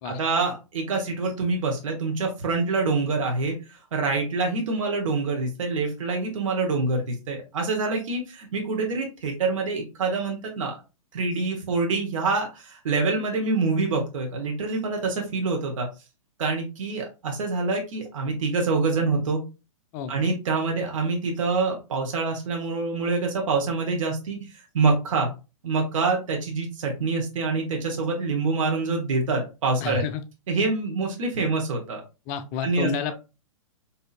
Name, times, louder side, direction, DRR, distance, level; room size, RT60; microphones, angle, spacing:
voice 1, 0.0-10.8 11.1-15.9 16.4-19.4 20.1-25.3 25.6-30.0 30.5-32.0 32.6-32.9, right 3 dB, 70° right, 1 dB, 1.1 m, -26 dB
voice 2, 29.8-30.2 32.3-33.2, left 7 dB, 35° left, 11 dB, 0.5 m, -30 dB
4.2 x 2.7 x 2.4 m, 0.30 s
hypercardioid pair, 115°, 18 cm